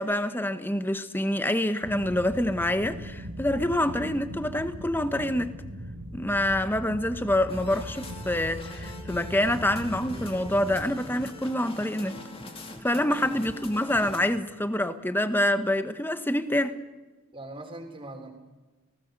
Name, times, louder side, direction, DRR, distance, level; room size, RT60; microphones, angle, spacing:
voice 1, 0.0-5.6 6.1-12.2 12.8-16.8, left 1 dB, 10° left, 1.1 m, -26 dB
sound 1, 1.8-11.0, equal, 75° right, 2.8 m, -39 dB
sound 2, 7.5-14.3, left 1 dB, 25° left, 2.6 m, -42 dB
voice 2, 12.9-13.4 17.3-18.3, right 2 dB, 25° right, 3.8 m, -42 dB
28.0 x 18.5 x 6.7 m
head